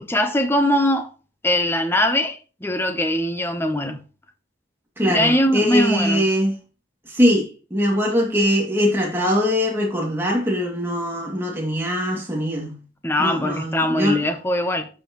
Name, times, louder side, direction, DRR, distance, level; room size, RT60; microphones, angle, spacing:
voice 1, 0.1-1.1 1.4-4.0 5.0-6.2 13.0-14.9, left 1 dB, 10° left, 0.9 m, -21 dB
voice 2, 5.0-6.6 7.1-12.8 13.2-14.2, equal, 10° right, 2.5 m, -22 dB
11.5 x 6.1 x 3.1 m
head